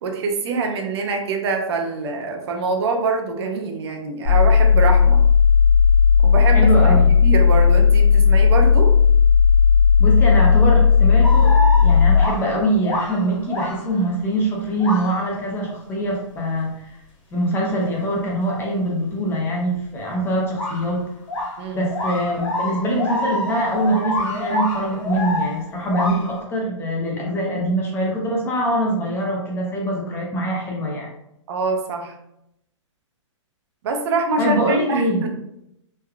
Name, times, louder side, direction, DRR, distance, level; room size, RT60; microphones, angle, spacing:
voice 1, 0.0-5.2 6.2-7.0 7.2-8.9 21.6-21.8 27.1-27.2 31.5-32.1 33.8-35.3, right 4 dB, 55° right, 4 dB, 0.5 m, -24 dB
sound 1, 4.2-12.2, left 6 dB, 55° left, 0.7 m, -14 dB
voice 2, 6.5-7.1 10.0-17.0 17.3-21.0 21.7-31.1 34.4-35.2, right 1 dB, 15° left, -2 dB, 0.4 m, -23 dB
sound 2, 11.2-14.0 14.8-15.2 20.6-21.0 21.3-26.4, left 1 dB, 80° left, 1.3 m, -27 dB
3.2 x 2.3 x 2.2 m, 0.80 s
hypercardioid pair, 140°, 17 cm